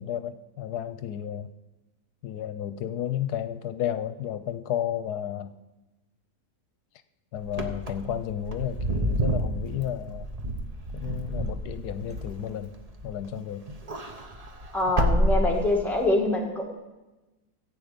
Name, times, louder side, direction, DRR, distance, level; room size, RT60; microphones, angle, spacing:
voice 1, 0.0-1.5 2.2-5.6 7.3-10.3 10.9-12.8 13.0-13.7, left 10 dB, 85° left, 12 dB, 1.2 m, -32 dB
Wind / Car, 7.5-13.3 13.6-16.1, equal, 30° right, 0.8 m, -29 dB
voice 2, 14.7-16.6, left 2 dB, ahead, -1 dB, 1.9 m, -24 dB
14.5 x 8.6 x 5.1 m, 1.1 s
omnidirectional pair, 1.7 m